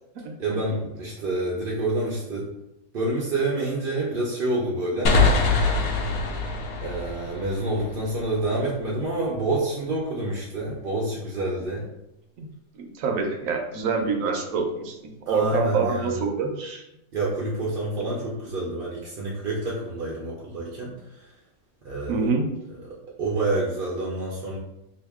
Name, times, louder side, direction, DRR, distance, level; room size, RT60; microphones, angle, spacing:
voice 1, 0.4-2.5 2.9-5.2 6.8-11.9 15.3-16.1 17.1-21.3 21.8-22.3 22.9-24.6, right 2 dB, 55° right, -4 dB, 0.6 m, -28 dB
sound 1, 5.1-8.5, left 3 dB, 80° left, 1.1 m, -24 dB
voice 2, 12.7-16.8 22.1-22.5, right 5 dB, 75° right, 2 dB, 1.0 m, -26 dB
2.8 x 2.6 x 3.4 m, 0.88 s
omnidirectional pair, 1.5 m